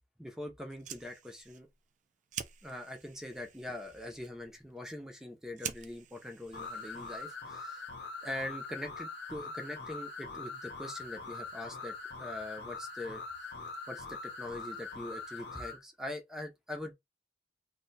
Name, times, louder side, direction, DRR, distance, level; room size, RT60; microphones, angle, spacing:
voice 1, 0.2-1.7 2.6-7.8 8.2-13.2 13.9-16.9, left 1 dB, 5° right, 0.7 m, -43 dB
Fire, 0.6-7.5, right 9 dB, 45° right, 0.4 m, -48 dB
sound 1, 6.5-15.8, left 4 dB, 65° left, 0.8 m, -43 dB
2.7 x 2.2 x 4.0 m
head